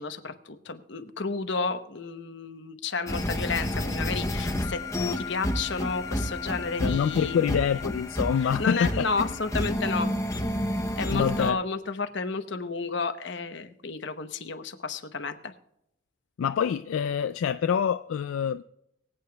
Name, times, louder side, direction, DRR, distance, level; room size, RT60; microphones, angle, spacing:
voice 1, 0.0-4.8 5.2-7.4 8.4-10.1 11.0-15.5, left 4 dB, 60° left, 0.9 m, -32 dB
sound 1, 3.1-11.5, left 1 dB, 15° left, 0.7 m, -30 dB
voice 2, 6.8-9.1 11.1-11.6 16.4-18.6, left 7 dB, 80° left, 0.3 m, -26 dB
23.5 x 8.6 x 2.3 m
head